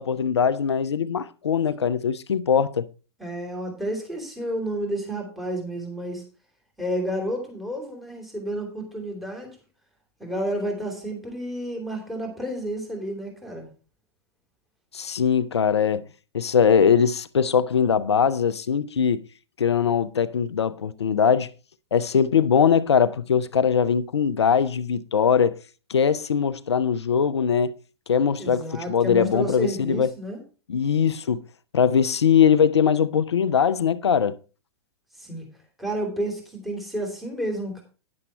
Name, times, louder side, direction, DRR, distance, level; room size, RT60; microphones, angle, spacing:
voice 1, 0.0-2.9 14.9-16.0 16.3-19.2 19.6-21.5 21.9-25.5 25.9-27.7 28.1-30.1 30.7-31.4 31.7-34.4, left 7 dB, 80° left, 0.6 m, -21 dB
voice 2, 3.2-6.2 6.8-9.6 10.2-13.7 28.4-30.4 35.2-35.5 35.8-37.8, right 1 dB, ahead, 2.8 m, -31 dB
9.8 x 7.1 x 4.3 m
hypercardioid pair, 110°, 14 cm